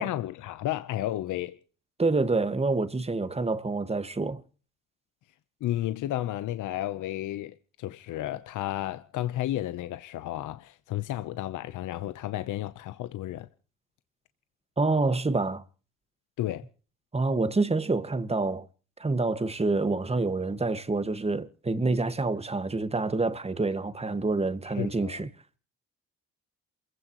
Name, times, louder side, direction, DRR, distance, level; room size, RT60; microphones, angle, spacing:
voice 1, 0.0-1.6 5.6-13.5 16.4-16.7 24.7-25.3, left 14 dB, 80° left, 1.0 m, -32 dB
voice 2, 2.0-4.4 14.8-15.6 17.1-18.7 19.0-25.3, right 3 dB, 20° right, 1.8 m, -27 dB
28.0 x 16.0 x 3.1 m
cardioid pair, 90°, 30 cm